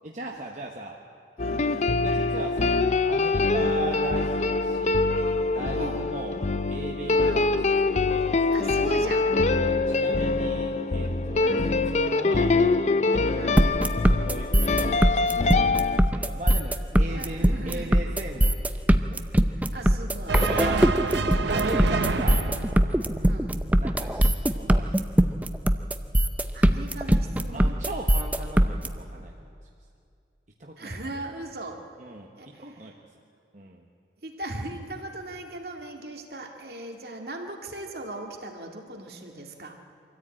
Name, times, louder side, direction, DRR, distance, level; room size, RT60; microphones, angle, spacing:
voice 1, 0.0-1.0 1.9-5.1 5.5-6.4 6.7-7.4 7.8-8.2 9.6-11.6 11.9-12.6 13.1-13.6 14.2-18.8 19.0-19.2 20.5-20.9 21.5-22.5 23.8-25.1 27.5-29.3 30.6-31.0 32.0-32.9 33.5-33.8, right 2 dB, 45° right, 0 dB, 1.2 m, -38 dB
sound 1, 1.4-16.0, left 3 dB, 40° left, 0.5 m, -24 dB
voice 2, 1.4-2.1 3.5-3.8 5.7-6.1 7.2-7.5 8.5-9.4 11.4-11.8 13.3-13.7 17.1-17.9 19.5-20.5 23.2-23.6 26.5-27.8 30.8-31.9 32.4-32.9 34.2-39.7, right 2 dB, 60° right, 2 dB, 2.1 m, -39 dB
sound 2, 13.6-28.9, right 1 dB, 10° right, 0.5 m, -21 dB
sound 3, 20.3-23.8, right 4 dB, 85° right, 0.9 m, -29 dB
25.0 x 14.0 x 8.9 m, 2.4 s
head